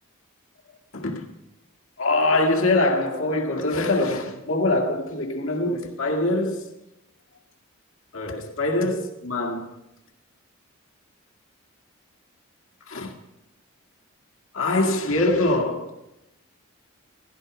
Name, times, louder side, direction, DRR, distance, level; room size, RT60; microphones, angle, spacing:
voice 1, 0.9-1.2 2.0-6.6 8.1-9.7 12.9-13.1 14.5-15.9, left 2 dB, 80° left, 2.0 m, -23 dB
18.0 x 15.0 x 5.0 m
head